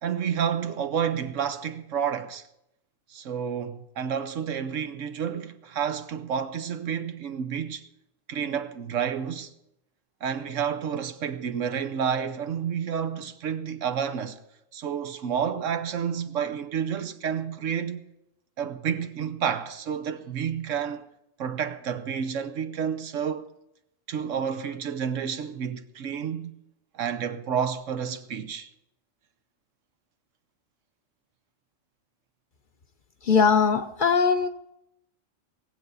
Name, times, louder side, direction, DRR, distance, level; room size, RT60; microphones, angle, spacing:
voice 1, 0.0-2.4 3.1-7.9 8.3-9.5 10.2-14.4 14.7-18.1 18.6-21.1 21.4-23.5 24.1-26.6 26.9-28.7, right 7 dB, 80° right, 1.2 m, -30 dB
voice 2, 33.2-34.5, left 5 dB, 50° left, 0.8 m, -20 dB
20.0 x 7.9 x 5.5 m
omnidirectional pair, 1.3 m